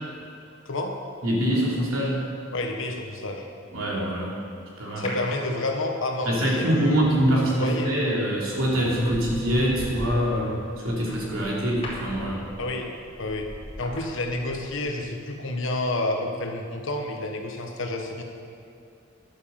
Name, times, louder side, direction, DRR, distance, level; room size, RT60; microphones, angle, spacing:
voice 1, 1.2-2.2 3.7-4.4 4.8-5.1 6.2-12.5, equal, 80° right, -4 dB, 3.1 m, -24 dB
voice 2, 2.5-3.4 5.0-7.0 7.4-7.9 12.6-12.9 13.2-13.5 13.8-18.2, left 2 dB, 65° left, 3 dB, 1.4 m, -29 dB
sound 1, 5.0-6.1 7.9-8.2 8.7-14.9 15.2-15.3, left 1 dB, 30° left, 3.2 m, -39 dB
11.0 x 8.2 x 7.0 m, 2.5 s
head